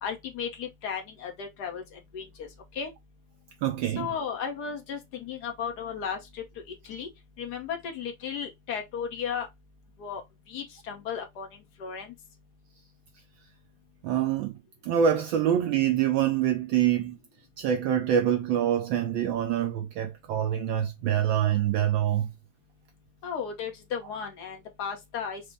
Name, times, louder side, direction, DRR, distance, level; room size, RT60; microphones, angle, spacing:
voice 1, 0.0-2.5 2.7-2.9 4.0-6.4 6.9-7.1 7.4-9.5 10.0-10.2 10.5-11.5 11.8-12.1 23.2-25.4, left 7 dB, 60° left, 1.2 m, -35 dB
voice 2, 3.6-4.1 14.0-14.5 14.9-17.2 17.6-22.3, right 10 dB, 75° right, 1.2 m, -25 dB
5.2 x 2.0 x 3.3 m
omnidirectional pair, 2.3 m